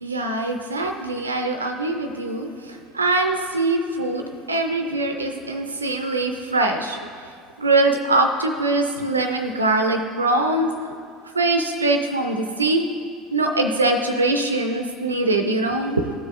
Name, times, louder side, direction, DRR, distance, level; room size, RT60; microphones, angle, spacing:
voice 1, 0.0-2.5 2.9-7.0 7.6-10.7 11.4-12.8 13.3-16.1, right 2 dB, 90° right, 5 dB, 0.4 m, -22 dB
14.0 x 4.8 x 2.5 m, 2.3 s
figure-of-eight pair, 70°, 0 cm